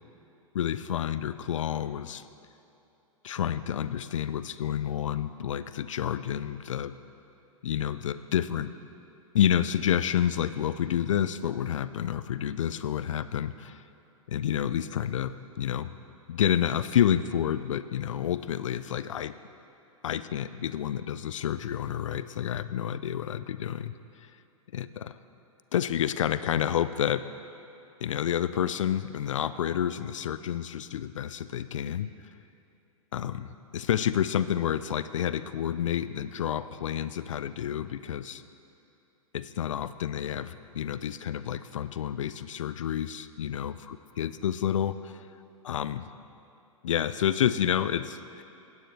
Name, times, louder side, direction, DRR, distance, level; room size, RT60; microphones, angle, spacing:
voice 1, 0.5-2.2 3.2-6.9 7.6-8.7 9.3-13.8 14.3-15.9 16.3-19.3 20.0-23.9 24.7-25.1 25.7-27.2 28.0-32.1 33.1-38.4 39.3-45.2 45.6-46.1 46.8-48.4, left 9 dB, 65° left, 14 dB, 0.4 m, -29 dB
17.5 x 9.2 x 3.3 m, 2.9 s
figure-of-eight pair, 105°, 18 cm